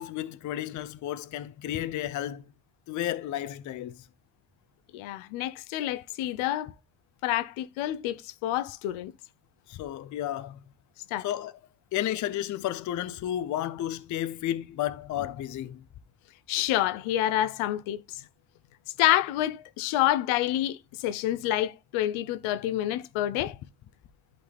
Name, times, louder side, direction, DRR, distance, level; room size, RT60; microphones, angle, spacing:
voice 1, 0.0-2.4 2.9-4.0 9.7-10.6 11.2-11.5 11.9-15.9, left 12 dB, 40° left, 0.6 m, -32 dB
voice 2, 4.9-6.7 7.2-9.1 11.1-11.3 16.5-18.2 19.0-23.6, left 13 dB, 85° left, 0.9 m, -28 dB
11.0 x 4.2 x 3.5 m
cardioid pair, 150°, 47 cm